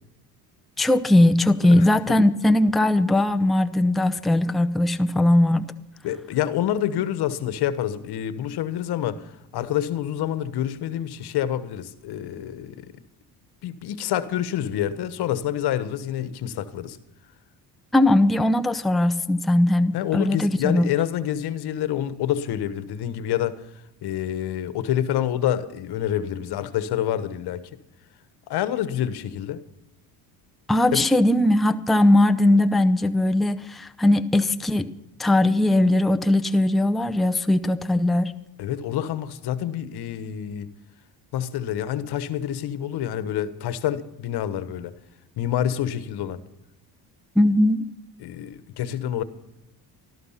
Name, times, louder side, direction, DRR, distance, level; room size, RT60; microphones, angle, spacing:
voice 1, 0.8-5.7 17.9-20.9 30.7-34.9 35.2-38.3 47.4-47.9, left 1 dB, ahead, 7 dB, 0.7 m, -19 dB
voice 2, 1.7-2.2 6.0-12.9 13.6-17.0 19.9-23.6 24.0-27.7 28.5-29.6 30.9-31.0 38.6-40.7 41.3-44.9 45.4-46.4 48.2-49.2, left 11 dB, 65° left, 15 dB, 1.3 m, -27 dB
14.0 x 13.0 x 5.7 m, 0.89 s
cardioid pair, 95°, 42 cm